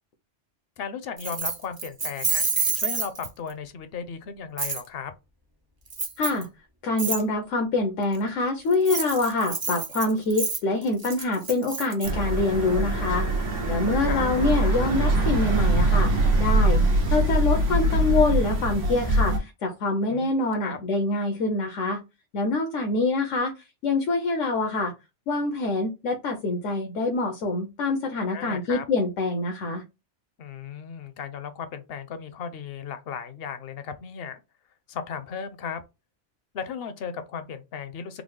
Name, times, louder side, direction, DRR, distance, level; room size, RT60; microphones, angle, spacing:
voice 1, 0.8-2.5 2.7-5.1 13.7-14.2 20.1-20.3 20.6-20.8 28.3-28.8 30.4-34.4 34.9-35.8 36.5-38.2, left 6 dB, 60° left, 0.7 m, -36 dB
Keys jangling, 1.2-3.5 4.6-4.8 5.9-6.4 7.0-7.2 8.7-12.1, right 4 dB, 35° right, 0.3 m, -28 dB
voice 2, 6.2-6.5 6.8-13.3 13.7-22.0 22.3-23.5 23.8-24.9 25.3-29.8, left 2 dB, 85° left, 1.0 m, -25 dB
sound 1, 12.0-19.4, right 1 dB, 90° right, 1.3 m, -23 dB
3.7 x 2.0 x 3.1 m
omnidirectional pair, 1.2 m